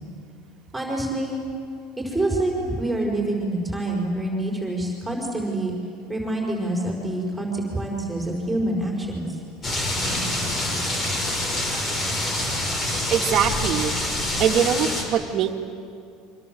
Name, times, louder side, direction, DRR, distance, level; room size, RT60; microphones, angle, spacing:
voice 1, 0.7-1.4 2.0-5.7 6.1-9.4, right 1 dB, 5° right, -1 dB, 5.3 m, -26 dB
sound 1, 9.6-15.0, left 1 dB, 30° left, 6.1 m, -26 dB
voice 2, 13.1-13.9 14.4-15.5, right 8 dB, 50° right, 4 dB, 2.2 m, -22 dB
28.5 x 25.5 x 7.8 m, 2.4 s
supercardioid pair, 120°, 0 cm